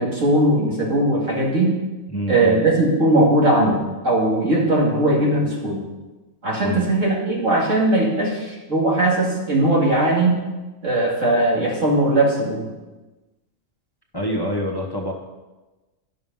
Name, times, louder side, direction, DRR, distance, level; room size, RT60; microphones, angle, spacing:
voice 1, 0.0-1.7 2.3-5.8 6.4-10.4 10.8-12.7, right 1 dB, 75° right, -3 dB, 2.8 m, -19 dB
voice 2, 2.1-2.7 6.6-6.9 14.1-15.1, equal, 20° left, 1 dB, 0.9 m, -26 dB
11.5 x 6.4 x 5.4 m, 1.1 s
omnidirectional pair, 1.3 m